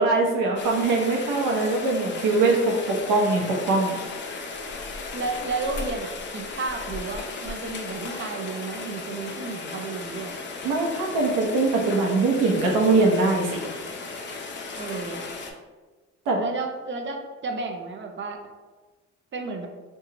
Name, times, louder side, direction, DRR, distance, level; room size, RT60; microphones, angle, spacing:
voice 1, 0.0-4.0 10.6-13.5 16.3-16.4, right 3 dB, 90° right, 0 dB, 0.8 m, -22 dB
Rain, 0.6-15.5, left 3 dB, 40° left, 0.5 m, -36 dB
voice 2, 5.1-10.4 14.8-15.3 16.4-18.4 19.3-19.7, right 3 dB, 40° right, 3 dB, 0.6 m, -32 dB
2.9 x 2.3 x 3.8 m, 1.3 s
cardioid pair, 90°, 30 cm